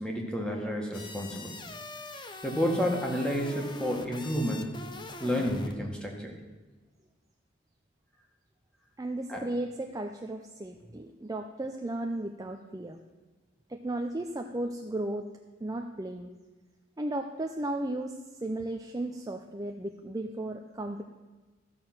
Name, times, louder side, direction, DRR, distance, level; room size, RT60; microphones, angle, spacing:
voice 1, 0.0-1.6 2.4-4.7 5.2-6.4 9.3-9.4, equal, 5° left, 0 dB, 1.8 m, -30 dB
sound 1, 0.9-5.8, left 2 dB, 25° left, 0.8 m, -43 dB
voice 2, 9.0-13.0 13.7-15.2 15.6-16.3 17.0-21.0, right 1 dB, 20° right, 4 dB, 0.5 m, -35 dB
14.0 x 6.8 x 6.0 m, 1.3 s
head